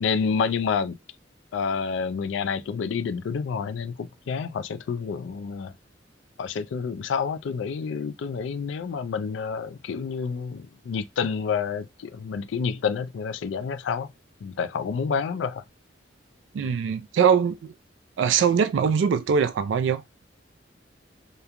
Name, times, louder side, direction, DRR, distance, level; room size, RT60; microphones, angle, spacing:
voice 1, 0.0-1.0 1.5-5.7 6.4-14.1 14.4-15.6, left 6 dB, 75° left, 0.3 m, -28 dB
voice 2, 16.5-17.7 18.2-20.0, right 7 dB, 75° right, 0.3 m, -22 dB
3.0 x 2.1 x 2.4 m
head